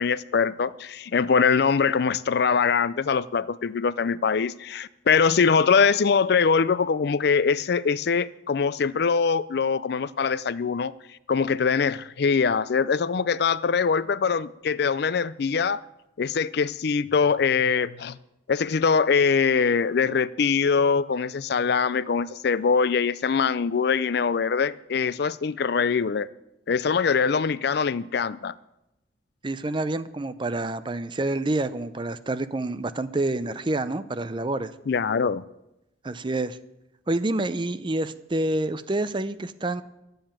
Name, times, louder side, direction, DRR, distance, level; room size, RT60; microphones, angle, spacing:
voice 1, 0.0-10.9 11.3-15.8 16.2-18.2 18.5-26.3 26.7-28.5 34.9-35.4, left 5 dB, 60° left, 0.4 m, -23 dB
voice 2, 29.4-34.7 36.0-36.6 37.1-39.8, right 2 dB, 25° right, 0.6 m, -28 dB
12.0 x 7.9 x 8.8 m
head